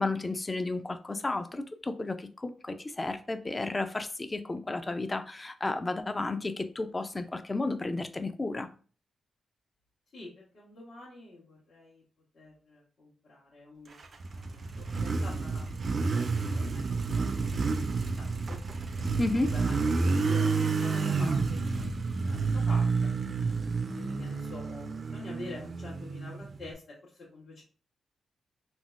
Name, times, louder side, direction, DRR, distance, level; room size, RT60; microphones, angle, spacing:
voice 1, 0.0-8.7 19.2-19.5, left 2 dB, 25° left, 0.4 m, -32 dB
voice 2, 10.1-12.0 12.3-14.0 14.3-15.7 16.5-17.8 18.2-18.6 19.1-19.8 20.2-23.1 24.0-27.6, left 2 dB, 70° left, 1.2 m, -47 dB
Motorcycle, 14.0-26.7, right 4 dB, 50° right, 0.4 m, -30 dB
3.8 x 2.1 x 2.4 m
cardioid pair, 70°, 0 cm